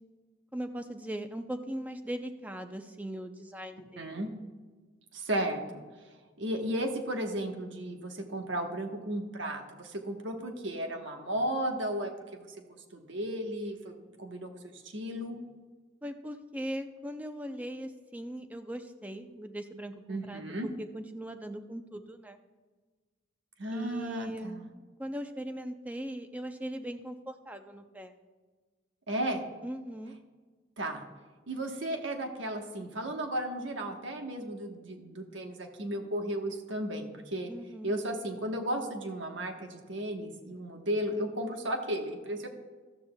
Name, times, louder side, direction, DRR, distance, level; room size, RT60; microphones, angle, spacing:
voice 1, 0.5-4.2 16.0-20.4 20.9-22.4 23.7-24.6 25.0-28.1 29.6-30.1 37.5-37.9, right 1 dB, 10° right, 7 dB, 0.4 m, -39 dB
voice 2, 4.0-4.3 5.1-5.8 6.4-12.1 12.4-12.6 12.9-15.4 20.1-20.7 23.6-24.7 29.1-29.5 30.8-31.0 31.5-37.5 37.8-42.5, right 1 dB, 85° right, 4 dB, 1.1 m, -34 dB
13.5 x 12.5 x 2.2 m, 1.4 s
head